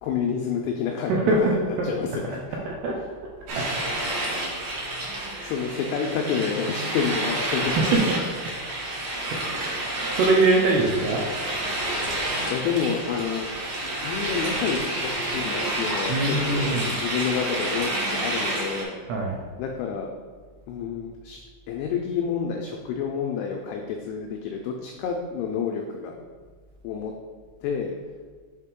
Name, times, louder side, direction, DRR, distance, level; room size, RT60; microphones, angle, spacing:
voice 1, 0.0-2.4 4.6-4.7 5.4-8.1 12.5-13.5 14.0-19.0 19.6-20.1 20.7-21.4 21.7-26.2 26.8-27.1 27.6-28.0, left 6 dB, 90° left, 2 dB, 2.3 m, -29 dB
voice 2, 1.1-1.9 2.2-3.0 3.6-3.7 5.3-5.5 6.9-7.1 7.6-8.2 9.3-11.2 16.1-16.9 19.1-19.4, right 2 dB, 80° right, -2 dB, 2.4 m, -24 dB
sound 1, 3.5-18.8, right 1 dB, 65° right, 2.7 m, -29 dB
7.3 x 4.1 x 3.7 m, 1.5 s
omnidirectional pair, 5.3 m